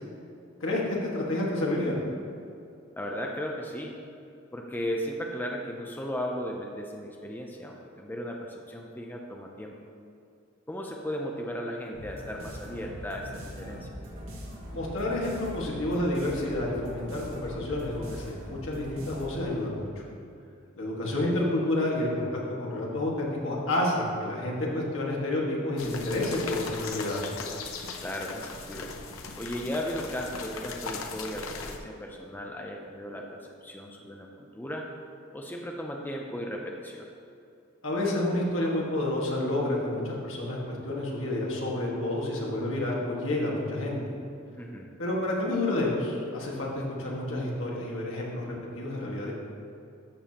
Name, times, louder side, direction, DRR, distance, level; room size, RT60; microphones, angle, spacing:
voice 1, 0.6-2.0 14.7-19.9 20.7-27.3 37.8-44.1 45.0-49.3, left 1 dB, 70° left, -3 dB, 1.8 m, -29 dB
voice 2, 3.0-4.0 4.5-9.8 10.7-13.9 21.2-21.4 28.0-28.9 29.3-34.9 35.3-37.1 44.6-44.9, equal, 10° left, 0 dB, 0.6 m, -36 dB
sound 1, 11.9-19.6, equal, 70° right, 2.0 m, -42 dB
sound 2, 25.8-31.8, left 4 dB, 85° left, 0.7 m, -39 dB
12.5 x 6.8 x 2.9 m, 2.6 s
head